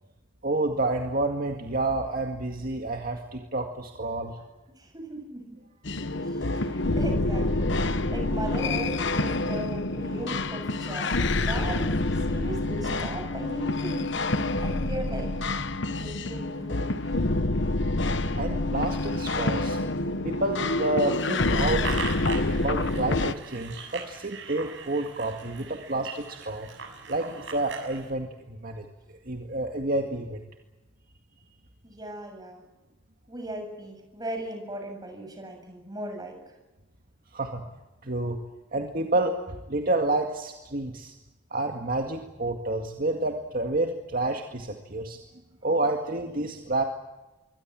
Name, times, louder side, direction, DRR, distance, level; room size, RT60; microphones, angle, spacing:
voice 1, 0.4-4.4 6.4-6.8 18.3-19.8 20.2-21.9 22.5-26.7 27.1-30.4 37.3-37.6 38.0-38.4 38.7-41.1 41.5-45.2 45.6-46.8, right 2 dB, 45° right, 3 dB, 2.0 m, -29 dB
voice 2, 4.8-5.6 6.2-14.2 14.6-15.3 16.0-17.2 31.8-32.7 33.3-36.6, right 1 dB, 20° right, 3 dB, 7.6 m, -38 dB
sound 1, 5.9-23.3, left 2 dB, 60° left, 1.2 m, -27 dB
sound 2, 21.8-28.1, right 5 dB, 65° right, 7.0 m, -40 dB
26.0 x 24.0 x 7.6 m, 1.1 s
head